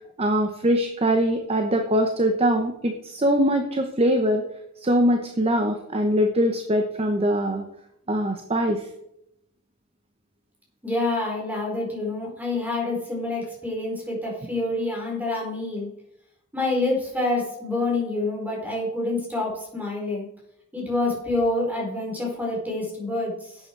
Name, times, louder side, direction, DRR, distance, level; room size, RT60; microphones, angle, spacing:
voice 1, 0.2-4.4 4.8-7.6 8.1-8.9, equal, 25° right, 5 dB, 1.0 m, -22 dB
voice 2, 10.8-15.9 16.5-20.3 20.7-23.6, left 2 dB, 5° right, -2 dB, 4.4 m, -27 dB
11.5 x 8.6 x 4.6 m, 0.78 s
head